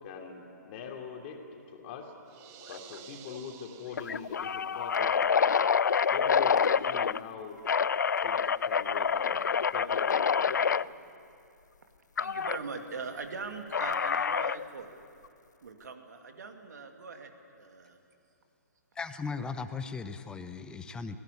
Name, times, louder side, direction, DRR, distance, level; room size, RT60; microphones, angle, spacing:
voice 1, 0.0-2.1 2.7-5.2 6.1-7.6 8.2-9.4 9.7-10.8, left 6 dB, 40° left, 2 dB, 3.0 m, -43 dB
sound 1, 2.3-4.8, right 11 dB, 25° right, 1.0 m, -52 dB
sound 2, 2.7-3.0 3.3-3.4 3.9-7.2 7.6-10.8 12.2-12.6 13.7-14.7, left 6 dB, 75° left, 0.4 m, -27 dB
voice 2, 12.2-14.9 15.6-18.0, right 4 dB, 70° right, 5 dB, 2.4 m, -41 dB
voice 3, 19.0-21.2, left 5 dB, 10° left, 10 dB, 0.8 m, -37 dB
19.5 x 17.5 x 9.8 m, 2.6 s
hypercardioid pair, 135°, 10 cm